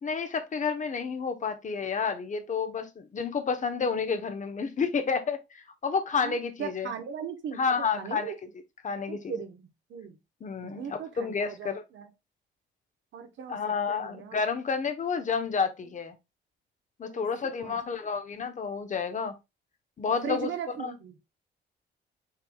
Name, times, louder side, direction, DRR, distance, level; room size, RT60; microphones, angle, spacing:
voice 1, 0.0-6.9 7.5-8.3 8.8-9.3 10.4-11.8 13.5-16.1 17.0-19.4 20.0-20.5 20.8-20.9, left 5 dB, 40° left, 0.9 m, -30 dB
voice 2, 6.2-8.4 9.1-10.2 10.6-12.1 13.1-13.6 13.9-14.4 17.1-17.8 20.2-21.2, right 7 dB, 70° right, 1.1 m, -38 dB
5.7 x 3.4 x 2.3 m
cardioid pair, 90°, 20 cm